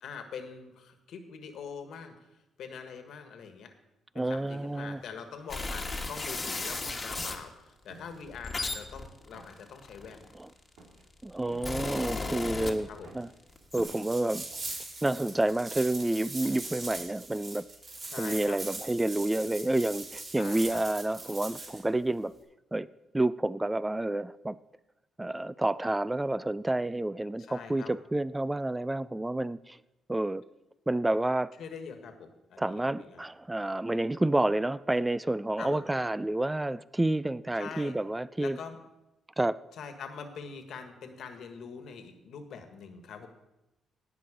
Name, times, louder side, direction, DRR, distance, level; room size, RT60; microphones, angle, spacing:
voice 1, 0.0-2.3 2.6-3.7 4.1-10.3 12.9-13.1 18.1-18.6 20.3-20.8 27.4-27.9 31.6-33.2 35.6-35.8 37.5-37.9 38.4-38.8 39.8-43.3, left 6 dB, 70° left, 6 dB, 1.5 m, -44 dB
voice 2, 4.2-5.0 10.3-10.5 11.2-13.3 13.7-14.4 15.0-17.7 18.2-22.3 22.7-22.9 23.1-24.6 25.2-29.8 30.1-30.4 30.9-31.5 32.6-38.6 39.4-39.6, right 1 dB, 10° right, 17 dB, 0.3 m, -29 dB
sound 1, 4.3-16.7, right 2 dB, 85° right, 2.4 m, -57 dB
sound 2, 5.5-7.4 8.1-10.5 11.2-13.2 13.5-13.8, left 3 dB, 25° left, 1.5 m, -35 dB
sound 3, 13.7-21.8, right 2 dB, 40° right, 3.5 m, -41 dB
17.5 x 5.9 x 5.0 m, 0.96 s
cardioid pair, 90°, 0 cm